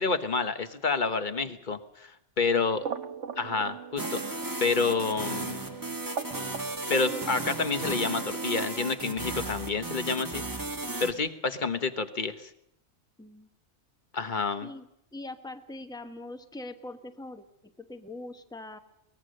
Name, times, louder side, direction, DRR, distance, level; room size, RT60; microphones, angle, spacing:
voice 1, 0.0-2.1 2.4-2.8 3.4-5.6 6.9-10.4 11.0-12.5 14.1-14.7, left 4 dB, 45° left, 9 dB, 1.2 m, -29 dB
sound 1, 2.8-8.7, right 7 dB, 80° right, 1.3 m, -40 dB
sound 2, 4.0-11.1, right 2 dB, 15° right, 1.2 m, -35 dB
voice 2, 13.2-13.5 14.6-18.8, left 2 dB, 5° left, 7 dB, 1.0 m, -43 dB
23.0 x 19.5 x 6.5 m, 0.80 s
omnidirectional pair, 1.2 m